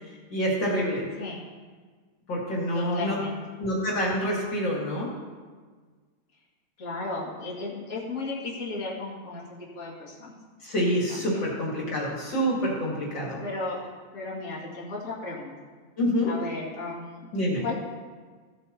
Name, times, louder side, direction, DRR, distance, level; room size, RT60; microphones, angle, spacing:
voice 1, 0.3-1.0 2.3-3.2 3.6-5.1 10.6-13.4 16.0-16.3 17.3-17.6, equal, 60° left, -4 dB, 2.8 m, -27 dB
voice 2, 2.7-3.4 6.8-9.4 9.7-10.4 11.1-11.4 13.4-13.8 14.1-15.5 16.3-17.3 17.6-17.7, left 3 dB, 35° left, -7 dB, 2.5 m, -35 dB
15.5 x 8.2 x 3.0 m, 1.5 s
omnidirectional pair, 2.3 m